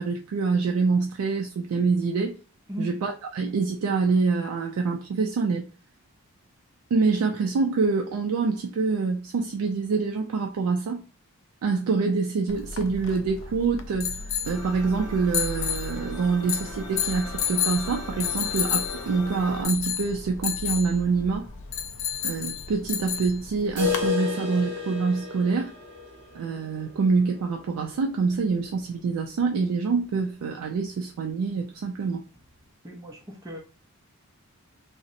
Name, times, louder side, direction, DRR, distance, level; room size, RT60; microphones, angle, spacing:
voice 1, 0.0-2.4 2.8-5.7 6.9-11.0 11.6-14.2 14.5-21.5 22.2-25.7 26.3-32.2, right 4 dB, 85° right, 0.3 m, -26 dB
sound 1, 12.5-24.1, left 8 dB, 55° left, 0.3 m, -31 dB
sound 2, 14.4-19.6, left 1 dB, 80° left, 0.7 m, -40 dB
sound 3, 23.8-29.6 29.9-30.0 30.3-30.4 30.9-31.0 31.9-32.0, left 6 dB, 50° right, 0.8 m, -33 dB
voice 2, 32.8-33.6, equal, 15° right, 0.4 m, -36 dB
2.7 x 2.0 x 2.4 m
head